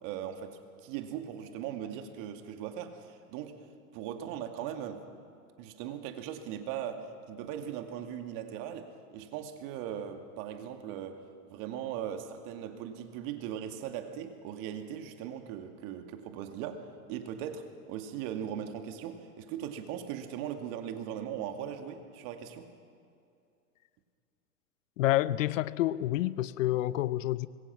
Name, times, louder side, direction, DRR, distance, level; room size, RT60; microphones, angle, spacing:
voice 1, 0.0-3.6 3.9-5.1 5.6-22.7, right 9 dB, 45° right, 6 dB, 2.4 m, -39 dB
voice 2, 25.0-27.5, left 15 dB, 55° left, 18 dB, 0.8 m, -28 dB
25.5 x 23.0 x 6.0 m, 2.5 s
hypercardioid pair, 110°, 46 cm